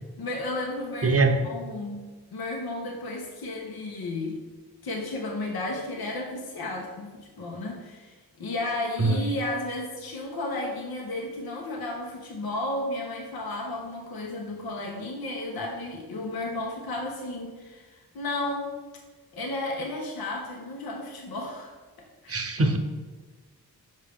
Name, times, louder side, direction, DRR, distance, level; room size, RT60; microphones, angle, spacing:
voice 1, 0.2-2.0 2.3-4.5 4.8-18.7 19.3-21.7 22.0-22.4, left 2 dB, 65° left, -1 dB, 1.1 m, -33 dB
voice 2, 1.0-1.3 9.0-9.2 22.3-22.8, right 3 dB, 35° right, 6 dB, 0.9 m, -22 dB
5.4 x 5.2 x 3.5 m, 1.3 s
cardioid pair, 45°, 39 cm